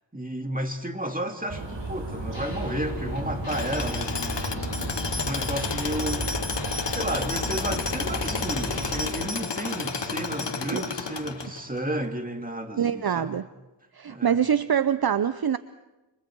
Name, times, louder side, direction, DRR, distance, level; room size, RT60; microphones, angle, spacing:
voice 1, 0.1-4.2 5.3-6.4 6.9-13.3 14.1-14.4, right 1 dB, 20° right, 4 dB, 2.4 m, -32 dB
sound 1, 1.5-9.1, right 2 dB, 85° right, 6.4 m, -33 dB
sound 2, 2.3-11.0, left 2 dB, 55° left, 4.6 m, -40 dB
Tools, 3.5-11.8, left 5 dB, 70° left, 1.2 m, -32 dB
voice 2, 12.8-13.5 13.9-15.6, right 8 dB, 55° right, 13 dB, 0.7 m, -24 dB
28.5 x 26.5 x 4.6 m, 1.1 s
wide cardioid pair, 65°, 43 cm